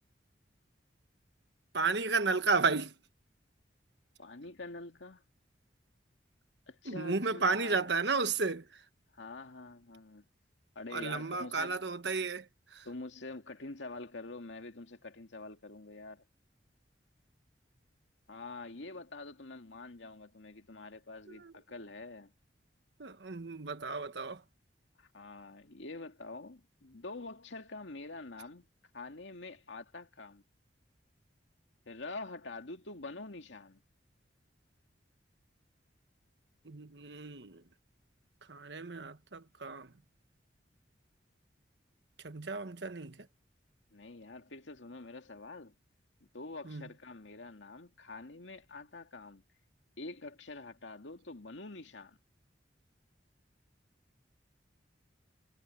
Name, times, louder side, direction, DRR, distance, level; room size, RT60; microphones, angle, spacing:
voice 1, 1.7-2.9 6.8-8.8 10.9-12.9 21.3-21.5 23.0-24.4 36.6-37.6 38.5-39.9 42.2-43.3 46.6-46.9, right 4 dB, 70° right, 1.3 m, -33 dB
voice 2, 4.2-5.2 6.7-7.9 9.1-10.2 10.8-11.8 12.8-16.2 18.3-22.3 25.0-28.7 28.9-30.4 31.9-33.8 43.9-45.7 46.2-49.4 50.0-52.2, left 3 dB, 90° left, 2.2 m, -46 dB
head